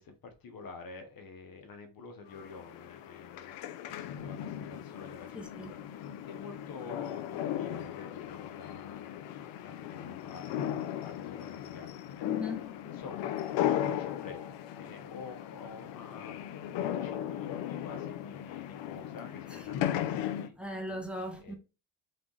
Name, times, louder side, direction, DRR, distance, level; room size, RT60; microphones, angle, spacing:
voice 1, 0.0-10.6 11.0-12.3 12.9-13.3 13.6-16.5 16.7-20.6 21.4-21.6, left 4 dB, 45° left, 1.1 m, -49 dB
sound 1, 2.3-20.5, left 11 dB, 65° left, 0.7 m, -37 dB
voice 2, 5.3-5.7 12.2-12.8 20.6-21.6, left 1 dB, ahead, 1.3 m, -38 dB
3.6 x 3.5 x 3.9 m
supercardioid pair, 85°, 47 cm